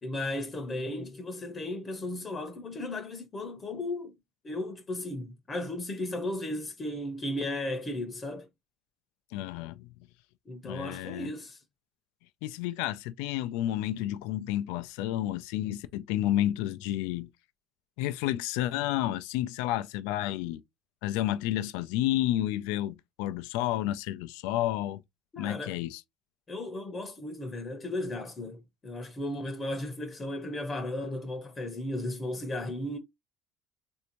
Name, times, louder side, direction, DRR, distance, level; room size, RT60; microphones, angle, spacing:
voice 1, 0.0-4.1 4.4-8.5 10.5-11.6 25.3-25.8 26.5-28.6 28.8-33.0, left 1 dB, 30° left, 0.7 m, -35 dB
voice 2, 9.3-9.9 10.6-11.3 12.4-17.3 18.0-20.6 21.0-25.0 25.4-26.0, left 13 dB, 80° left, 0.3 m, -31 dB
3.3 x 2.6 x 2.9 m
supercardioid pair, 95°, 0 cm